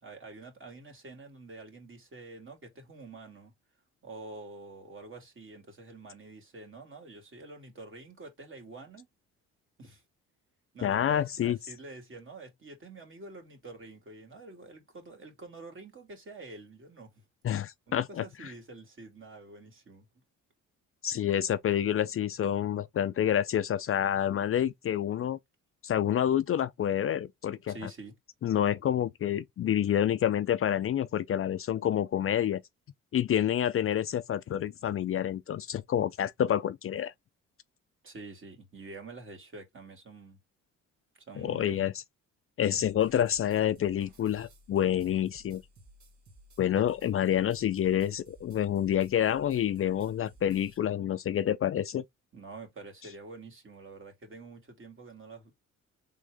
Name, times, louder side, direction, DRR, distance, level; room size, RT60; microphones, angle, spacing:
voice 1, 0.0-3.5 4.0-9.1 9.8-10.0 10.7-17.2 17.9-20.1 27.7-28.1 38.0-40.4 41.3-41.9 52.3-55.5, right 3 dB, 40° right, 2.3 m, -47 dB
voice 2, 10.8-11.6 17.4-18.5 21.0-25.4 25.8-27.7 28.4-32.6 33.1-37.1 41.4-41.9 42.6-45.6 46.6-52.0, left 10 dB, 45° left, 0.5 m, -28 dB
sound 1, 42.8-50.8, right 1 dB, 65° right, 1.9 m, -57 dB
3.8 x 3.7 x 3.4 m
cardioid pair, 90°, 30 cm